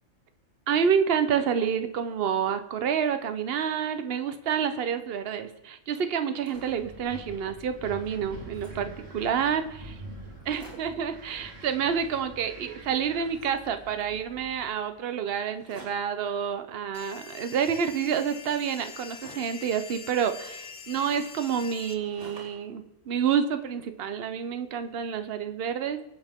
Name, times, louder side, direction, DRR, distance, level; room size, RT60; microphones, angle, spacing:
voice 1, 0.7-9.6 10.4-26.0, right 7 dB, 55° right, 9 dB, 1.0 m, -28 dB
sound 1, 6.2-6.9 7.4-7.5 7.7-8.9 9.6-9.7 9.9-10.0 10.3-11.1 11.8-12.6 12.8-14.1 15.5-16.2 17.1-19.7 20.4-22.7 23.1-24.0, right 1 dB, 35° right, 4.5 m, -53 dB
Wind, 6.5-14.7, right 1 dB, 85° right, 2.2 m, -45 dB
sound 2, 16.9-21.9, left 6 dB, 90° left, 1.3 m, -44 dB
24.0 x 8.1 x 3.6 m, 0.95 s
omnidirectional pair, 1.3 m